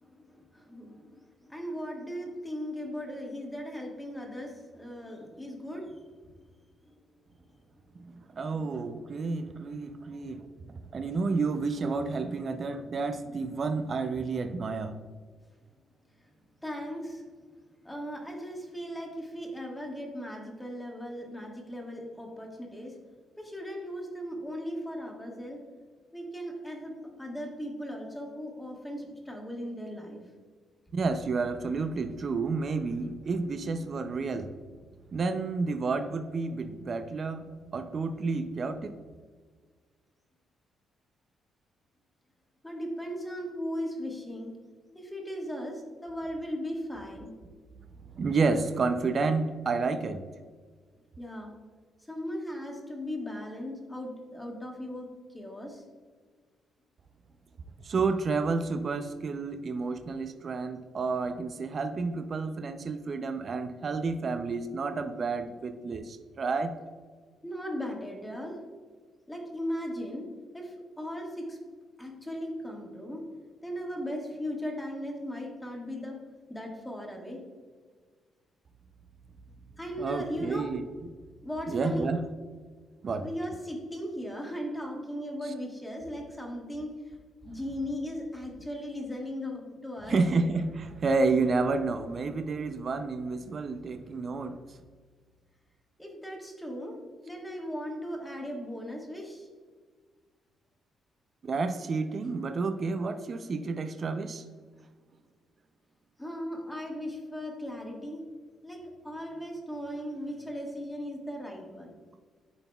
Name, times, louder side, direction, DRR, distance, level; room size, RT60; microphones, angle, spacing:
voice 1, 0.0-6.0 6.8-6.9 10.2-10.3 16.6-17.2 17.8-22.9 23.4-25.6 26.1-26.9 27.2-30.2 42.6-44.5 44.9-47.3 51.2-51.5 52.1-55.8 67.4-68.6 69.3-70.3 70.5-71.6 72.0-73.2 73.6-76.2 76.5-77.4 79.8-80.7 81.4-82.1 83.2-87.2 87.4-90.2 96.0-97.0 97.2-99.5 106.2-108.2 108.6-111.9, equal, 10° left, 0 dB, 1.5 m, -37 dB
voice 2, 8.0-10.5 10.9-15.0 30.9-34.5 35.1-38.9 48.1-50.2 57.8-66.7 80.0-80.8 81.7-82.2 83.0-83.3 85.4-85.5 90.1-94.6 101.4-104.5, right 4 dB, 45° right, 8 dB, 0.4 m, -30 dB
10.5 x 4.0 x 2.3 m, 1.5 s
cardioid pair, 90°, 0 cm